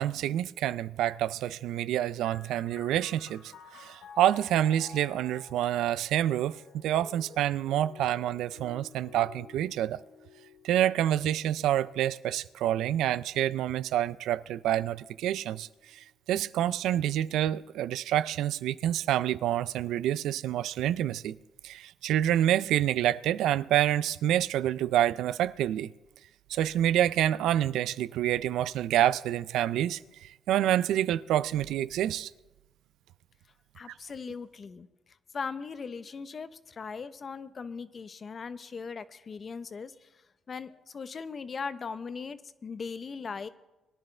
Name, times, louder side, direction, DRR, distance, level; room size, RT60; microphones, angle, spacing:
voice 1, 0.0-10.0 10.6-21.4 21.6-25.9 26.5-32.3, right 12 dB, 85° right, 0.4 m, -27 dB
sound 1, 2.2-15.5 16.3-17.1, left 7 dB, 75° left, 0.9 m, -53 dB
voice 2, 33.7-43.5, left 5 dB, 45° left, 0.7 m, -39 dB
22.0 x 10.5 x 3.3 m
cardioid pair, 90°, 0 cm